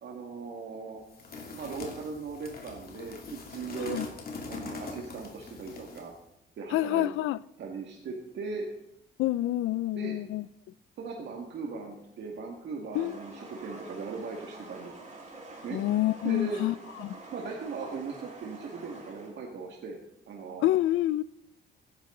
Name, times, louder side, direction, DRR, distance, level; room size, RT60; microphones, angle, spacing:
voice 1, 0.0-1.0 1.5-4.0 4.5-6.1 6.6-7.1 7.6-8.7 9.9-10.2 11.0-14.9 15.6-16.6 17.3-20.0 20.3-20.7, right 4 dB, 65° right, 2.0 m, -38 dB
sound 1, 1.1-6.1, left 3 dB, 50° left, 2.7 m, -42 dB
voice 2, 6.7-7.4 9.2-10.4 12.9-13.2 15.7-16.7 17.0-17.2 20.6-21.2, left 15 dB, 85° left, 0.5 m, -27 dB
sound 2, 12.9-19.3, right 3 dB, 35° right, 3.3 m, -47 dB
16.5 x 10.5 x 3.8 m
cardioid pair, 90°, 20 cm